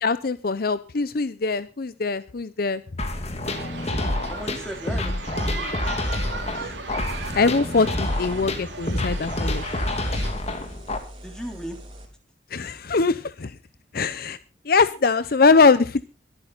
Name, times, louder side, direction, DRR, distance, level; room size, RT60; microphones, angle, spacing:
voice 1, 0.0-2.8 7.3-9.6 12.5-13.6 13.9-14.4 14.6-16.1, left 4 dB, 55° left, 14 dB, 0.6 m, -22 dB
sound 1, 3.0-11.0, left 1 dB, 35° left, 2.1 m, -28 dB
sound 2, 3.4-10.3, right 3 dB, 90° right, 3.3 m, -36 dB
voice 2, 4.3-5.2 5.4-6.5 8.3-8.5 10.1-10.4 11.2-11.8, equal, 5° left, 2 dB, 3.5 m, -38 dB
sound 3, 6.3-12.1, equal, 30° right, 3.7 m, -44 dB
22.5 x 8.9 x 4.0 m, 0.32 s
head